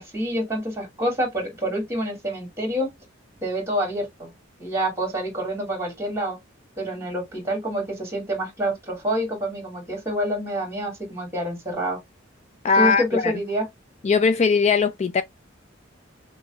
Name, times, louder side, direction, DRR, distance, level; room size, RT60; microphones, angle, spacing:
voice 1, 0.0-2.9 3.4-4.3 4.6-6.4 6.8-12.0 12.8-13.7, equal, 15° right, 2.3 m, -27 dB
voice 2, 12.6-13.3 14.0-15.2, left 5 dB, 35° left, 0.3 m, -20 dB
6.0 x 2.3 x 2.9 m
head